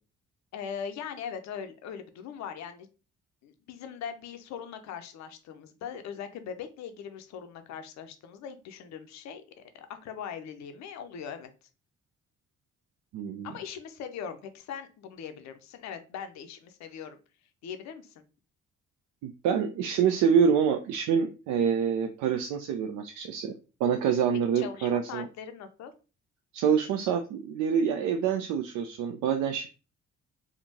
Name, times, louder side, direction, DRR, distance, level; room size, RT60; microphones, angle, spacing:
voice 1, 0.5-2.9 3.4-9.4 9.7-11.5 13.4-17.2 17.6-18.2 24.5-25.9, left 7 dB, 50° left, 8 dB, 0.6 m, -40 dB
voice 2, 13.1-13.5 19.2-23.5 23.8-25.3 26.5-29.7, right 7 dB, 55° right, 6 dB, 0.4 m, -26 dB
3.5 x 2.4 x 2.7 m, 0.33 s
figure-of-eight pair, 40°, 35 cm